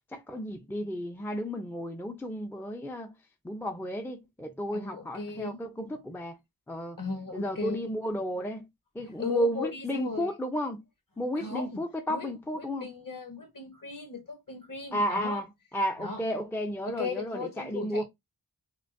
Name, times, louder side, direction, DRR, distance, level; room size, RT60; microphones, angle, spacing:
voice 1, 0.1-3.1 3.4-6.4 6.7-7.0 7.3-8.7 8.9-10.8 11.2-12.9 14.9-15.5 15.7-18.0, equal, 5° left, 0.5 m, -32 dB
voice 2, 4.7-5.9 7.0-8.0 9.0-10.3 11.3-11.8 12.1-12.3 12.6-15.4 16.0-16.2 16.8-18.0, left 4 dB, 50° left, 1.4 m, -37 dB
5.9 x 2.4 x 2.5 m
wide cardioid pair, 90°, 42 cm